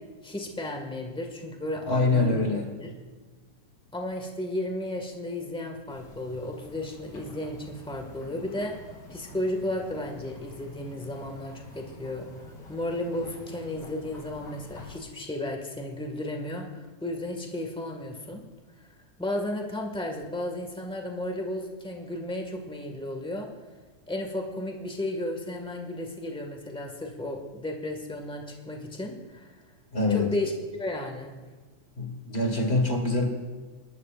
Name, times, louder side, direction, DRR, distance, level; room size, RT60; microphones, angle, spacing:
voice 1, 0.2-2.4 2.8-2.9 3.9-8.7 9.1-12.2 12.7-18.4 19.2-23.5 24.1-29.5 30.1-31.3, left 1 dB, 5° left, 2 dB, 0.8 m, -34 dB
voice 2, 1.9-2.8 29.9-30.3 32.0-33.3, left 2 dB, 30° left, 3 dB, 1.3 m, -25 dB
sound 1, 5.9-15.0, left 1 dB, 65° left, 6.6 m, -47 dB
28.5 x 12.5 x 2.5 m, 1.4 s
omnidirectional pair, 3.4 m